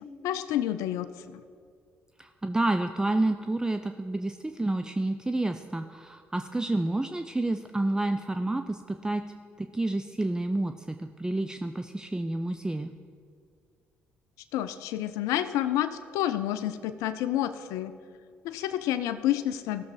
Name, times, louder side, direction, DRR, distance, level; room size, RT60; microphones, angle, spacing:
voice 1, 0.2-1.4 14.5-17.9 18.4-19.8, left 12 dB, 75° left, 12 dB, 0.4 m, -29 dB
voice 2, 2.2-9.2 9.6-12.9, right 2 dB, 15° right, 7 dB, 0.5 m, -29 dB
16.0 x 6.9 x 4.7 m, 2.2 s
hypercardioid pair, 50°, 5 cm